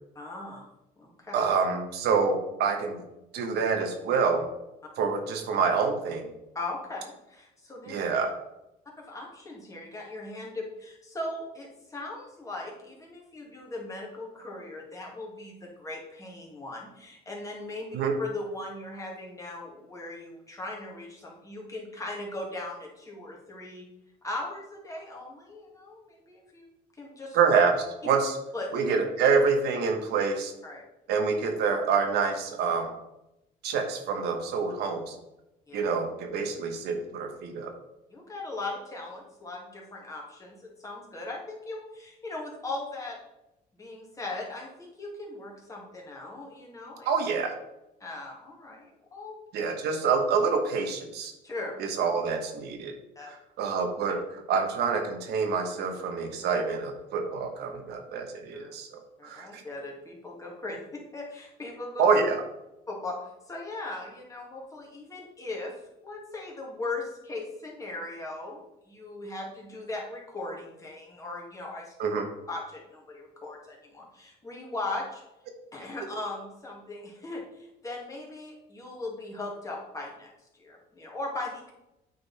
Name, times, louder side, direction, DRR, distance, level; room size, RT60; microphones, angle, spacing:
voice 1, 0.2-0.7 1.0-1.4 6.5-7.9 9.0-23.9 24.2-26.7 27.0-27.4 28.5-28.8 30.6-30.8 35.7-35.8 38.1-43.2 43.8-47.1 48.0-49.3 51.4-51.7 53.2-53.3 58.5-58.7 59.2-62.0 62.9-63.2 63.5-65.7 66.0-72.0 72.5-75.2 75.7-80.3 80.6-81.7, left 2 dB, 20° left, -2 dB, 2.2 m, -38 dB
voice 2, 1.3-3.0 3.3-4.4 5.0-6.3 7.9-8.3 17.9-18.1 27.3-28.4 28.7-30.5 31.1-32.9 33.6-35.1 35.7-37.7 47.0-47.6 49.5-51.3 51.8-52.9 53.6-54.2 54.5-59.6 62.0-62.4 72.0-72.3, right 5 dB, 75° right, 4 dB, 1.2 m, -27 dB
8.7 x 4.0 x 4.2 m, 0.91 s
cardioid pair, 110°, 17 cm